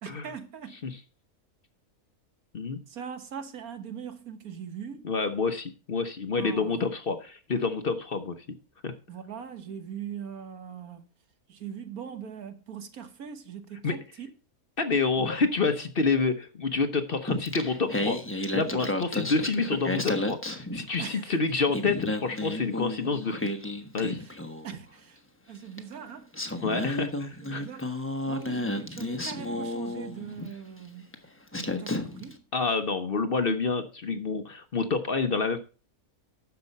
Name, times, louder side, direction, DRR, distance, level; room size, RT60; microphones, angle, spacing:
voice 1, 0.0-0.8 2.9-5.1 6.4-6.9 9.1-11.0 11.5-14.3 15.2-15.3 21.0-21.3 24.1-24.4 24.6-25.2 25.5-26.3 27.4-28.0 28.3-31.2 31.6-32.4, right 8 dB, 80° right, 1.7 m, -41 dB
voice 2, 5.0-8.6 8.8-8.9 13.8-14.0 14.8-23.5 23.9-24.2 26.6-27.6 32.5-35.6, left 4 dB, 45° left, 1.0 m, -28 dB
Singing, 17.3-21.2 21.5-24.8 25.8-25.9 26.3-30.5 31.1-31.3 31.5-32.3, left 1 dB, 10° left, 0.9 m, -32 dB
10.0 x 6.9 x 5.4 m
omnidirectional pair, 1.5 m